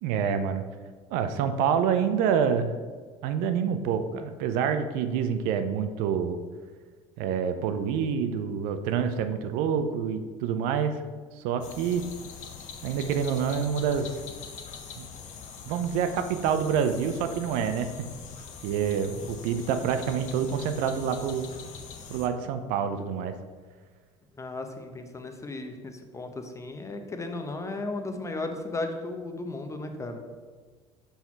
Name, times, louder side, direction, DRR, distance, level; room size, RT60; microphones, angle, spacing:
voice 1, 0.0-0.6 1.1-2.8 3.2-6.4 7.2-11.0 11.4-12.0 12.8-14.1 15.0-15.1 15.7-18.1 18.6-21.5 22.1-23.4, right 7 dB, 65° right, 9 dB, 0.5 m, -27 dB
sound 1, 11.6-22.3, left 6 dB, 55° left, 0.8 m, -43 dB
voice 2, 24.4-30.2, left 2 dB, 20° left, 5 dB, 0.9 m, -35 dB
5.6 x 4.2 x 4.6 m, 1.5 s
hypercardioid pair, 70°, 15 cm